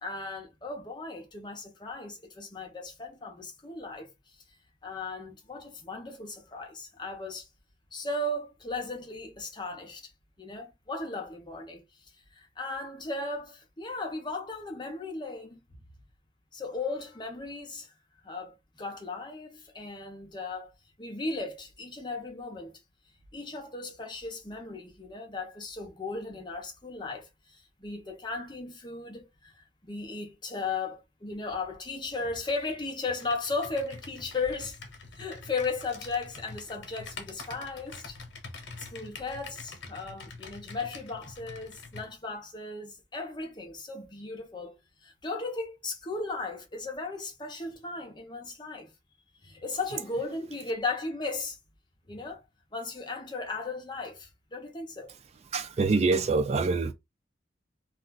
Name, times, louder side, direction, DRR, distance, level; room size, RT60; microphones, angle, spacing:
voice 1, 0.0-4.4 4.8-7.5 7.9-10.1 10.4-15.6 16.5-17.9 18.2-22.7 23.3-34.8 35.1-38.2 38.8-44.8 45.0-48.9 49.4-51.6 52.1-52.4 52.7-55.1, left 3 dB, 25° left, 0.8 m, -36 dB
Computer keyboard, 33.0-42.1, left 4 dB, 90° left, 0.9 m, -45 dB
voice 2, 55.5-56.9, right 3 dB, 35° right, 0.3 m, -25 dB
2.5 x 2.3 x 3.8 m
head